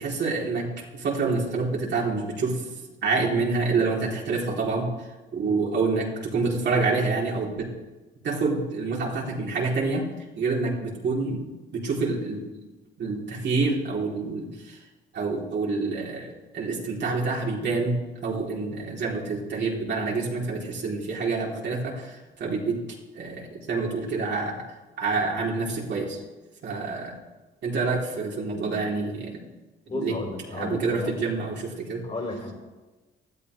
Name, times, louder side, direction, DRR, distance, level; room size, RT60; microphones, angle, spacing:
voice 1, 0.0-2.6 3.0-4.9 5.3-7.7 8.2-10.1 10.4-11.4 11.7-12.4 13.0-14.8 15.1-18.0 18.2-22.8 23.1-24.6 25.0-26.2 26.6-27.2 27.6-29.4 29.9-30.2 30.5-32.0, right 3 dB, 60° right, -3 dB, 3.6 m, -27 dB
voice 2, 29.9-31.1 32.0-32.5, left 2 dB, 35° left, 0 dB, 4.2 m, -34 dB
19.5 x 12.5 x 3.4 m, 1.2 s
cardioid pair, 90°, 20 cm